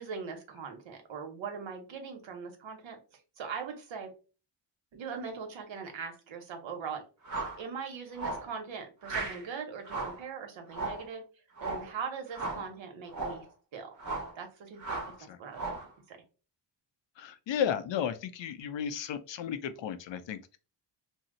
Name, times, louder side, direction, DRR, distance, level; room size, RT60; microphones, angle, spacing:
voice 1, 0.0-4.1 4.9-7.0 7.3-11.2 11.6-13.4 13.7-13.9 14.3-15.8 16.1-16.2, right 6 dB, 85° right, 0.9 m, -41 dB
sound 1, 7.2-7.6 8.2-8.5 9.0-9.4 9.8-10.2 10.7-11.1 11.6-11.9 12.3-12.7 13.1-13.4 14.0-14.4 14.8-15.2 15.5-15.9, right 3 dB, 40° right, 0.9 m, -36 dB
voice 2, 17.2-20.6, left 8 dB, 75° left, 0.5 m, -34 dB
2.7 x 2.0 x 3.7 m
wide cardioid pair, 105°, 45 cm